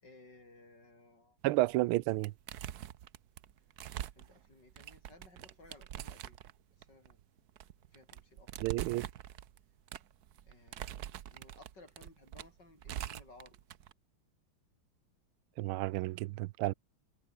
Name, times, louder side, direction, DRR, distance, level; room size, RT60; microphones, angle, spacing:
voice 1, 0.0-1.4 4.1-6.4 6.8-7.2 7.9-8.5 10.5-13.6, left 2 dB, 55° left, 7.4 m, -59 dB
voice 2, 1.4-2.3 8.6-9.1 15.6-16.7, right 18 dB, 85° right, 1.4 m, -31 dB
sound 1, 1.6-1.9 2.2-13.9, right 11 dB, 60° right, 1.2 m, -44 dB
omnidirectional pair, 2.3 m